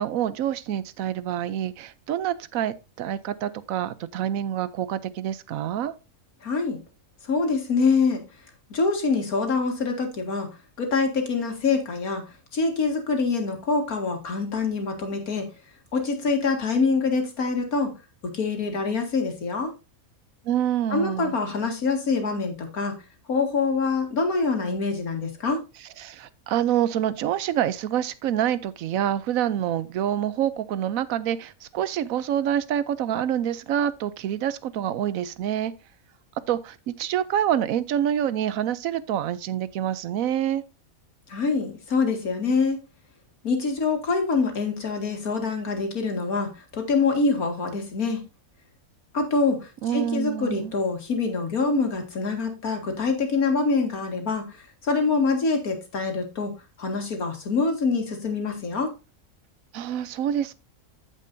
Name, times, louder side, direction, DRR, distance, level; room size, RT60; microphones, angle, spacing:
voice 1, 0.0-5.9 20.4-21.3 26.0-35.7 36.5-40.6 49.8-50.7 59.7-60.5, right 10 dB, 75° right, 1.1 m, -27 dB
voice 2, 6.4-6.8 7.2-8.2 8.7-10.5 10.8-12.2 12.5-15.5 15.9-17.9 18.3-19.7 20.9-22.9 23.3-25.6 41.3-42.8 43.4-48.2 49.1-56.5 56.8-58.9, left 4 dB, 85° left, 2.4 m, -25 dB
15.0 x 5.3 x 2.6 m
omnidirectional pair, 1.5 m